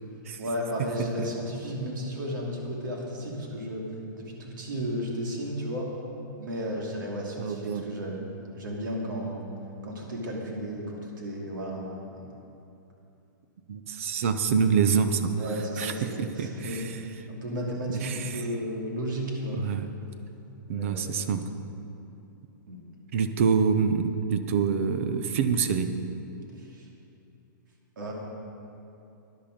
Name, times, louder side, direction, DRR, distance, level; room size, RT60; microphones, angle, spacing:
voice 1, 0.4-3.9 4.2-5.9 6.4-8.2 8.5-9.5 9.8-12.3 15.4-17.0 17.3-19.6 20.7-21.1 22.7-22.8 26.6-26.9 28.0-28.1, equal, 65° right, -2 dB, 2.7 m, -33 dB
voice 2, 7.4-7.9 13.7-15.3 15.8-17.0 17.9-18.5 19.5-19.9 20.7-21.4 23.1-25.9, right 6 dB, 40° right, 9 dB, 0.7 m, -26 dB
13.0 x 10.5 x 5.2 m, 2.8 s
hypercardioid pair, 175°, 11 cm